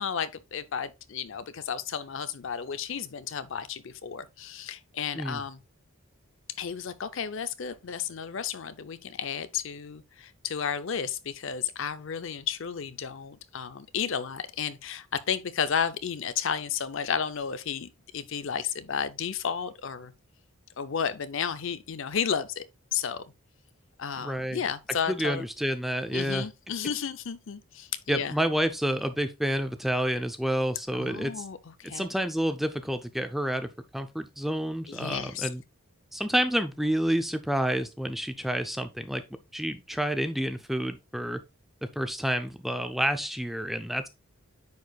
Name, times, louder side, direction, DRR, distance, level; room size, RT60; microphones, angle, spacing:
voice 1, 0.0-5.6 6.6-20.1 20.8-22.6 22.9-23.2 24.0-25.4 26.1-28.3 30.9-32.1 34.9-35.5, left 7 dB, 60° left, 0.5 m, -32 dB
voice 2, 24.2-24.6 25.1-26.5 28.1-31.4 31.8-35.6 36.1-39.2 39.5-41.4 42.0-44.1, equal, ahead, 0.4 m, -29 dB
9.3 x 4.7 x 2.3 m
head